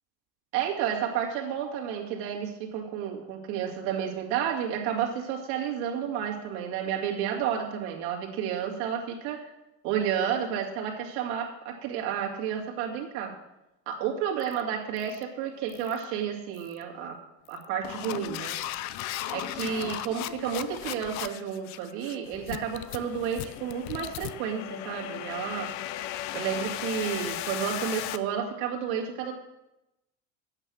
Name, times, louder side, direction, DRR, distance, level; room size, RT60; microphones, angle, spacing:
voice 1, 0.5-9.5 9.8-13.3 13.9-17.2 17.5-18.6 19.3-25.7 26.3-29.3, right 8 dB, 70° right, 0 dB, 2.4 m, -31 dB
sound 1, 14.4-14.6 15.0-15.2 15.7-16.0 16.6-16.8 17.4-28.2, left 13 dB, 55° left, 0.6 m, -36 dB
9.0 x 8.9 x 6.3 m, 0.94 s
cardioid pair, 150°, 35 cm